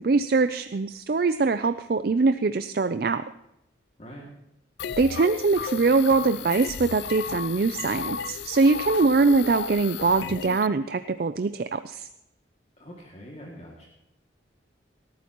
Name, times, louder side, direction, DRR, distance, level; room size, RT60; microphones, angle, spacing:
voice 1, 0.0-3.2 5.0-12.1, right 3 dB, 50° right, 11 dB, 0.4 m, -23 dB
voice 2, 4.0-4.3 12.8-13.9, equal, 35° left, -2 dB, 2.3 m, -44 dB
sound 1, 4.8-10.7, left 6 dB, 65° left, 0.5 m, -34 dB
18.5 x 13.5 x 3.0 m, 0.85 s
head